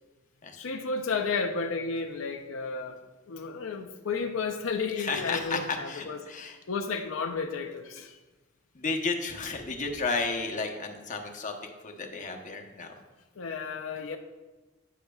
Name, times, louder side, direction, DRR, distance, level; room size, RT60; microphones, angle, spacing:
voice 1, 0.6-3.0 3.3-6.2 6.7-8.2 13.4-14.2, left 4 dB, 80° left, 5 dB, 0.6 m, -32 dB
voice 2, 5.0-6.6 8.7-11.5 11.8-12.9, left 4 dB, 40° left, 4 dB, 0.9 m, -32 dB
10.0 x 9.2 x 2.3 m, 1.2 s
head